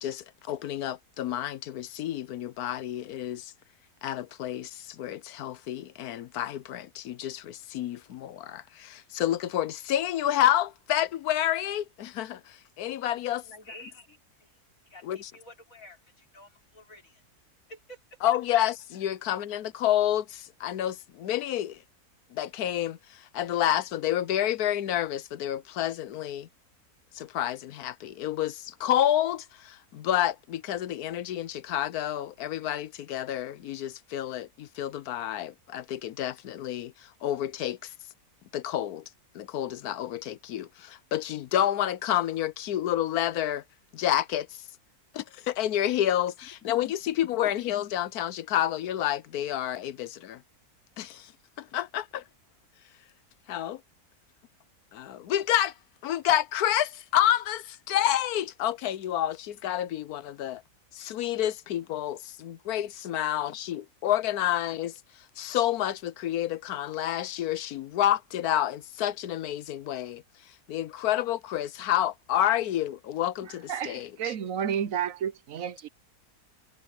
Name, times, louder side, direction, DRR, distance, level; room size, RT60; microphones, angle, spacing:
voice 1, 0.0-3.5 4.0-13.4 15.0-15.3 18.2-21.8 22.3-26.5 27.1-37.9 38.5-39.0 39.3-43.6 43.9-44.6 45.1-50.4 51.0-51.3 51.6-52.2 53.5-53.8 54.9-55.7 56.0-60.6 60.9-64.9 65.4-70.2 70.7-74.3, left 12 dB, 80° left, 1.2 m, -29 dB
voice 2, 13.2-14.5 14.9-17.2 17.7-18.0 46.8-47.2 47.4-47.6, left 2 dB, 60° left, 5.2 m, -50 dB
voice 3, 73.5-75.9, right 8 dB, 65° right, 1.1 m, -31 dB
omnidirectional pair, 1.6 m